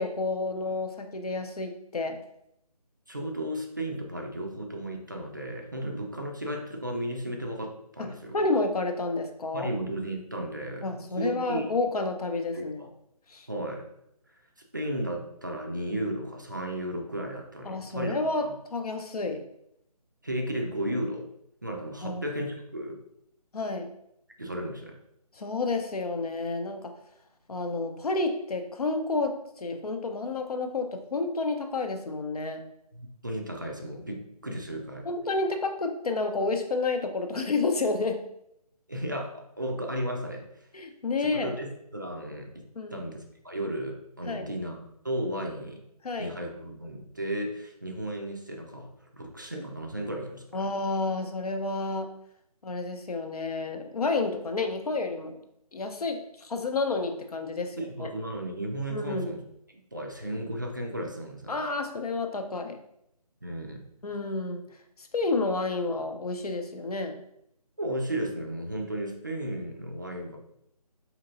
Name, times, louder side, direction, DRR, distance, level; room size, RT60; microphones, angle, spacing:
voice 1, 0.0-2.2 8.0-9.7 10.8-12.8 13.3-13.5 17.7-18.5 18.7-19.4 22.0-22.2 23.5-23.9 25.3-26.9 27.5-32.6 35.0-38.2 40.7-41.6 42.8-43.0 44.3-44.5 46.0-46.3 50.5-52.1 52.6-55.4 55.7-58.1 58.9-59.3 61.5-62.8 64.0-64.6 65.0-67.1, left 3 dB, 70° left, 5 dB, 0.7 m, -30 dB
voice 2, 3.1-8.4 9.5-11.6 12.5-12.9 13.5-13.8 14.7-18.5 20.2-21.3 21.6-23.0 24.4-25.0 32.9-35.1 38.9-40.7 41.2-42.6 42.9-45.8 46.2-50.7 57.8-59.4 59.9-61.6 63.4-63.8 67.8-70.4, right 1 dB, 30° right, 2 dB, 0.4 m, -34 dB
4.4 x 2.9 x 2.5 m, 0.76 s
figure-of-eight pair, 170°, 20 cm